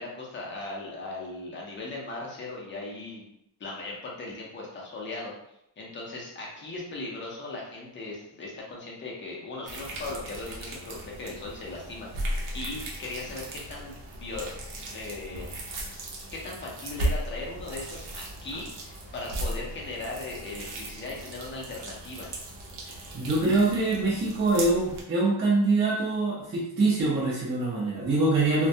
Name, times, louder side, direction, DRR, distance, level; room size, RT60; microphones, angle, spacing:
voice 1, 0.0-3.3 3.6-5.3 5.8-14.5 14.9-15.5 16.3-22.3, left 2 dB, 25° left, -3 dB, 0.5 m, -38 dB
sound 1, 9.7-25.0, right 1 dB, 85° right, 0.7 m, -37 dB
voice 2, 23.1-28.7, right 2 dB, 30° right, -8 dB, 0.6 m, -24 dB
2.2 x 2.1 x 2.6 m, 0.77 s
wide cardioid pair, 175°, 46 cm